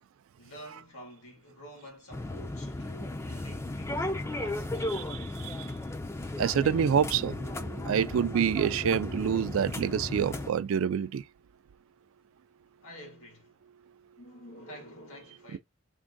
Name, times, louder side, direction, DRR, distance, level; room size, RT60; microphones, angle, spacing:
voice 1, 0.4-4.7 12.8-13.5 14.2-15.6, equal, 80° left, 1.6 m, -49 dB
sound 1, 2.1-10.5, left 2 dB, 10° left, 0.3 m, -35 dB
voice 2, 5.0-5.7 6.4-11.2 15.5-15.6, right 8 dB, 75° right, 0.3 m, -27 dB
3.6 x 2.2 x 3.7 m
head